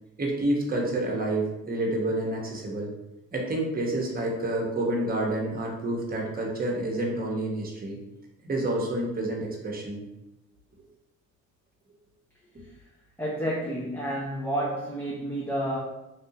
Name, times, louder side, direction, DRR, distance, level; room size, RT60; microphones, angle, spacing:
voice 1, 0.2-2.9 3.3-8.0 8.4-10.0, right 1 dB, 30° right, -2 dB, 1.0 m, -28 dB
voice 2, 13.2-15.8, right 1 dB, 5° left, -6 dB, 0.6 m, -30 dB
3.3 x 2.6 x 2.8 m, 0.92 s
cardioid pair, 90°, 30 cm